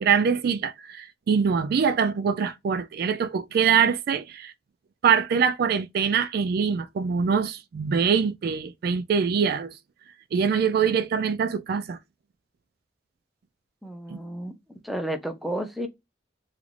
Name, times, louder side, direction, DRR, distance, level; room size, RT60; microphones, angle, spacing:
voice 1, 0.0-4.5 5.0-9.7 10.3-12.0 14.1-14.2, right 6 dB, 55° right, 0.3 m, -24 dB
voice 2, 13.8-15.9, right 1 dB, ahead, 0.5 m, -32 dB
3.0 x 2.5 x 3.1 m
head